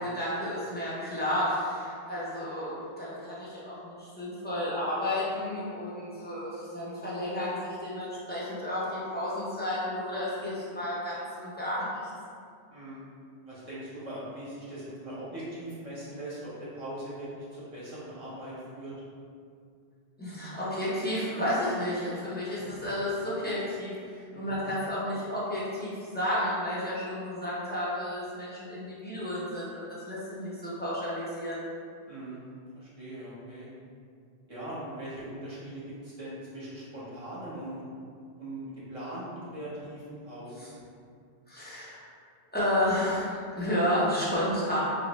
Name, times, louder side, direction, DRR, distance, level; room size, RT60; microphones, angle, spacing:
voice 1, 0.0-11.9 20.2-31.6 40.6-40.7 41.5-42.1 42.5-44.8, left 1 dB, 10° left, -9 dB, 0.6 m, -32 dB
voice 2, 12.7-13.0 13.4-18.9 22.6-22.8 24.3-24.6 32.1-32.4 32.7-33.7 34.5-37.8 38.4-40.7, right 1 dB, 35° right, -9 dB, 1.0 m, -40 dB
3.3 x 2.4 x 3.1 m, 2.3 s
omnidirectional pair, 1.1 m